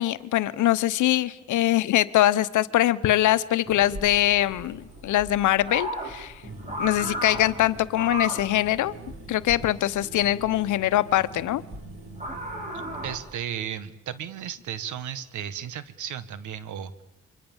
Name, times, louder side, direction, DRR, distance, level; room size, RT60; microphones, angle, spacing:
voice 1, 0.0-6.3 6.8-8.9 9.3-11.6, left 13 dB, 75° left, 14 dB, 1.1 m, -23 dB
sound 1, 3.6-13.3, equal, 25° right, 6.1 m, -36 dB
sound 2, 6.4-13.2, right 2 dB, 45° right, 6.8 m, -44 dB
voice 2, 12.7-17.0, right 9 dB, 75° right, 14 dB, 1.7 m, -35 dB
28.0 x 24.5 x 7.3 m, 0.94 s
cardioid pair, 90°, 30 cm